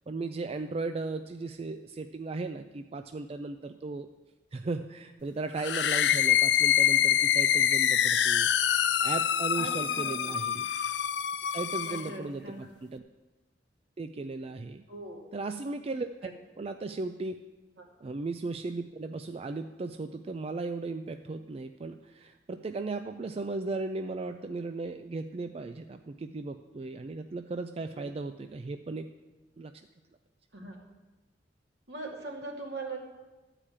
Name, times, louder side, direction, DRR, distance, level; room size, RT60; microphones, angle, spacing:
voice 1, 0.1-4.1 4.5-10.7 11.5-13.0 14.0-14.8 15.3-16.1 16.6-17.4 18.0-29.1 29.6-29.7, right 3 dB, 35° right, 8 dB, 0.4 m, -36 dB
sound 1, 5.6-12.1, left 10 dB, 80° left, 0.5 m, -25 dB
voice 2, 9.5-10.4 11.9-12.6 14.9-15.3 16.2-16.3 17.8-17.9 27.9-28.1 30.5-30.8 31.9-33.0, right 3 dB, 80° right, -1 dB, 2.5 m, -41 dB
13.0 x 5.0 x 8.6 m, 1.1 s
head